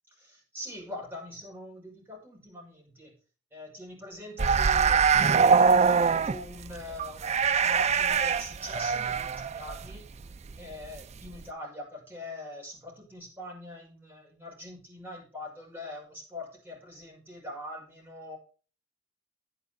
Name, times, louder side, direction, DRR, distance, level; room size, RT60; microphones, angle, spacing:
voice 1, 0.2-3.1 3.5-10.0 10.6-18.4, left 1 dB, 10° right, -2 dB, 5.7 m, -43 dB
sound 1, 4.4-11.0 11.3-11.4, right 5 dB, 35° right, 0.4 m, -23 dB
10.5 x 10.0 x 4.0 m, 0.37 s
head